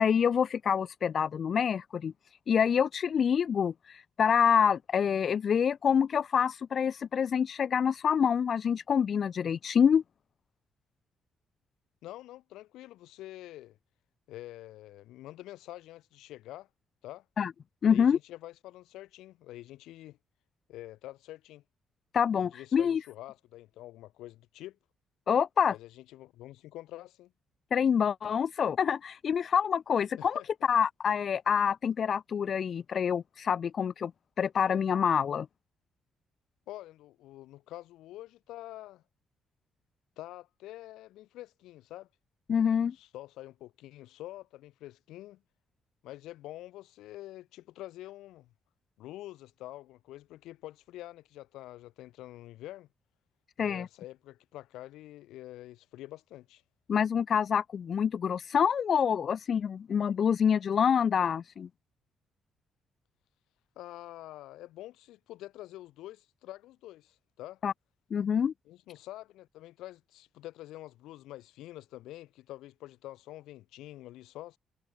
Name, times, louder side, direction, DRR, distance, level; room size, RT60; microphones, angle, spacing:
voice 1, 0.0-2.1 2.5-10.0 17.4-17.5 17.8-18.2 22.1-23.0 25.3-25.7 27.7-30.4 30.7-34.1 34.4-35.5 42.5-42.9 53.6-53.9 56.9-61.7 67.6-67.7 68.1-68.5, left 7 dB, 55° left, 0.4 m, -26 dB
voice 2, 12.0-13.8 14.3-16.7 17.0-17.2 17.9-20.2 20.7-21.6 22.4-24.8 25.7-27.3 30.2-30.5 36.7-39.0 40.2-42.1 42.9-45.4 46.0-48.5 49.0-52.9 53.6-56.6 63.8-67.6 68.7-74.6, left 15 dB, 90° left, 6.5 m, -46 dB
cardioid pair, 90°, 0 cm